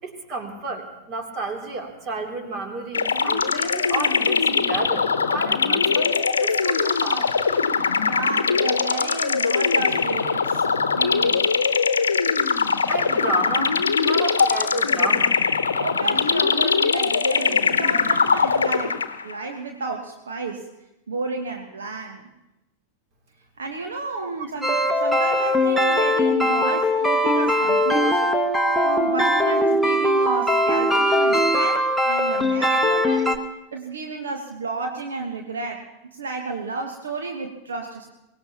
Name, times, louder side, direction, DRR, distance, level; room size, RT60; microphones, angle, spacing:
voice 1, 0.0-7.3 12.9-15.4 24.4-24.5, right 3 dB, 35° right, 2 dB, 3.0 m, -31 dB
sound 1, 2.9-19.3, left 5 dB, 70° left, 0.9 m, -21 dB
voice 2, 8.0-11.5 15.8-20.7 21.1-22.3 23.6-28.3 28.8-33.3 33.7-38.1, right 3 dB, 65° right, 3 dB, 1.3 m, -31 dB
sound 2, 24.6-33.4, equal, ahead, 1.1 m, -20 dB
23.5 x 19.0 x 2.9 m, 0.96 s
figure-of-eight pair, 90°, 0 cm